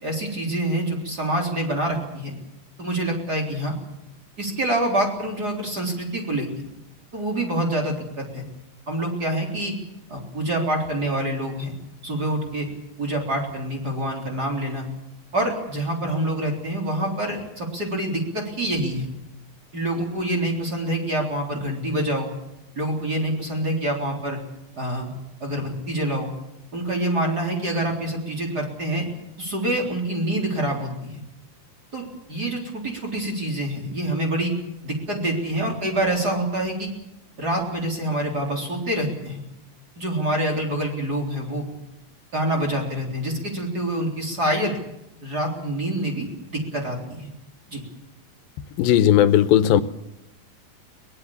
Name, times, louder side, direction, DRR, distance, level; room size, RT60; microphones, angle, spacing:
voice 1, 0.0-2.3 2.8-3.7 4.4-6.5 7.1-8.4 8.9-9.7 10.1-11.7 12.0-12.7 13.0-14.9 15.3-19.1 19.7-22.3 22.8-24.4 24.8-25.1 25.4-26.3 26.7-29.1 29.4-31.2 31.9-32.0 32.3-34.5 34.8-36.9 37.4-39.4 40.0-41.7 42.3-44.8 45.2-46.3 46.5-47.3 47.7-47.8, right 1 dB, 25° right, 0 dB, 4.0 m, -26 dB
voice 2, 48.8-49.8, left 11 dB, 85° left, 13 dB, 2.7 m, -16 dB
23.0 x 19.5 x 7.2 m, 0.89 s
omnidirectional pair, 4.0 m